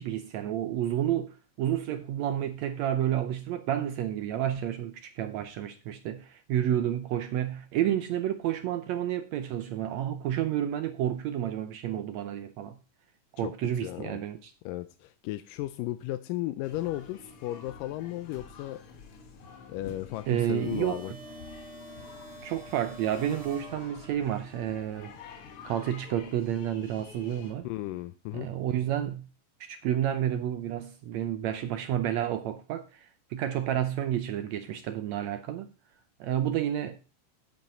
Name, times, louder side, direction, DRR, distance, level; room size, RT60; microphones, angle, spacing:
voice 1, 0.0-12.8 13.3-14.5 20.3-21.2 22.4-25.1 25.6-27.7 28.3-29.3 29.6-35.7 36.2-37.0, right 11 dB, 75° right, 1.6 m, -30 dB
voice 2, 13.8-14.2 14.7-18.8 19.7-21.1 27.6-28.5, left 16 dB, 85° left, 2.2 m, -35 dB
sound 1, 16.6-27.5, left 5 dB, 55° left, 1.8 m, -48 dB
sound 2, 20.5-24.4, right 1 dB, 40° right, 3.1 m, -48 dB
9.4 x 8.1 x 4.2 m
omnidirectional pair, 3.8 m